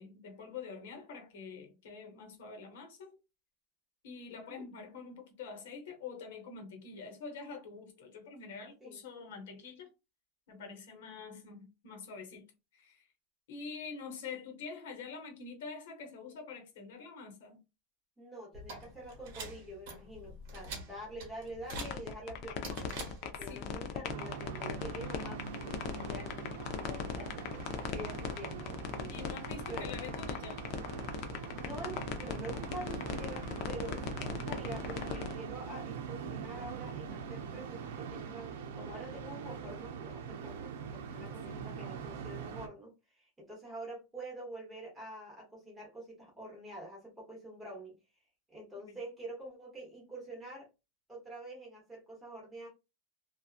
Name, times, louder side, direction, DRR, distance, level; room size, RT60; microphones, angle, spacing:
voice 1, 0.0-3.2 4.0-9.9 10.5-12.5 12.7-13.1 13.5-17.6 23.4-23.8 29.1-30.6 41.1-41.7 48.9-49.0, left 5 dB, 70° left, 0.9 m, -46 dB
voice 2, 4.3-4.6 8.8-9.0 18.2-22.9 23.2-29.3 29.7-30.0 31.6-48.0 48.5-50.7 51.1-52.7, right 1 dB, 5° right, 0.9 m, -46 dB
sound 1, 18.5-23.6, right 2 dB, 45° right, 1.1 m, -46 dB
sound 2, 21.7-35.3, left 8 dB, 40° left, 0.4 m, -38 dB
sound 3, 24.1-42.7, right 6 dB, 80° right, 0.6 m, -43 dB
2.7 x 2.3 x 2.4 m
supercardioid pair, 180°, 0 cm